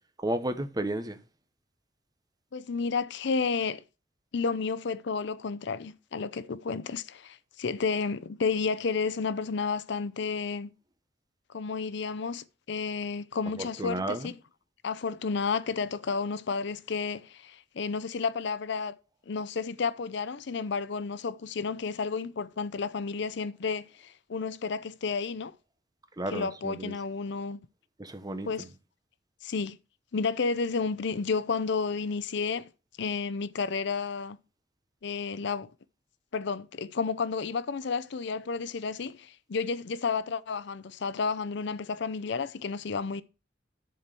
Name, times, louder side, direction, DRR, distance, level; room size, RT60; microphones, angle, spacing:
voice 1, 0.2-1.2 13.8-14.3 26.2-26.9 28.0-28.5, right 1 dB, 20° right, 1.0 m, -32 dB
voice 2, 2.5-3.8 4.3-10.7 11.5-14.3 14.8-19.0 19.3-25.5 26.3-27.6 28.5-28.7 29.4-29.8 30.1-32.7 33.0-34.4 35.0-35.7 36.3-43.2, left 5 dB, 65° left, 0.6 m, -31 dB
11.0 x 4.5 x 6.8 m
head